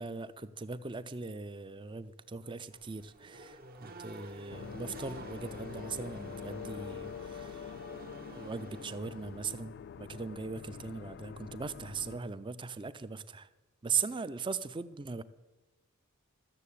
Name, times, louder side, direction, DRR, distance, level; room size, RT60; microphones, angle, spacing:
voice 1, 0.0-7.7 8.3-13.5 13.8-15.2, right 5 dB, 20° right, 15 dB, 0.5 m, -39 dB
Race car auto racing / Accelerating revving vroom, 2.7-9.4, right 2 dB, 40° right, 1.1 m, -50 dB
sound 1, 4.5-12.2, left 7 dB, 50° left, 0.3 m, -45 dB
13.5 x 7.3 x 8.4 m, 1.2 s
head